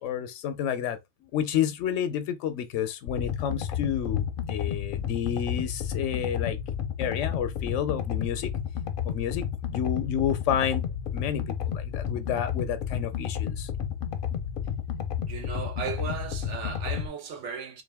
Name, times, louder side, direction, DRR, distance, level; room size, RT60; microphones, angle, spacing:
voice 1, 0.0-6.6 7.0-8.5 9.0-9.4 9.7-10.8 11.1-13.7, left 9 dB, 90° left, 0.9 m, -30 dB
sound 1, 3.1-17.1, left 8 dB, 60° left, 0.6 m, -32 dB
voice 2, 15.3-17.8, right 6 dB, 80° right, 1.2 m, -36 dB
3.8 x 2.5 x 3.4 m
omnidirectional pair, 1.2 m